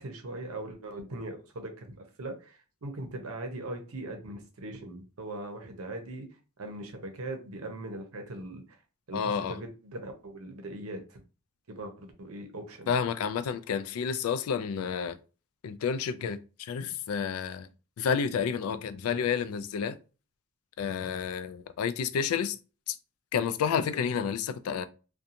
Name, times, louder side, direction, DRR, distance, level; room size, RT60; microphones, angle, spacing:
voice 1, 0.0-6.3 6.6-8.6 9.1-11.2 11.7-12.9, right 2 dB, 80° right, 0.7 m, -40 dB
voice 2, 9.1-9.6 12.9-15.2 15.6-17.7 18.0-20.0 20.8-22.6 22.9-23.0 23.3-24.9, left 7 dB, 85° left, 0.3 m, -30 dB
2.5 x 2.2 x 2.7 m
head